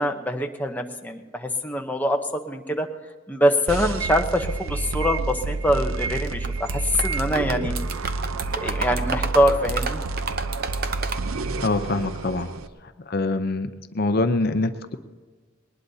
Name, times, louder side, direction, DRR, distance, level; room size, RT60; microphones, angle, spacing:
voice 1, 0.0-2.9 3.3-7.7 8.3-10.0, equal, 10° left, 3 dB, 0.8 m, -24 dB
sound 1, 3.7-12.7, right 3 dB, 80° right, 0.7 m, -29 dB
sound 2, 6.2-6.7 7.0-11.2, right 5 dB, 45° right, 0.8 m, -30 dB
voice 2, 11.6-12.5 12.8-15.0, left 2 dB, 45° left, 9 dB, 0.6 m, -25 dB
20.5 x 19.5 x 2.8 m, 1.4 s
head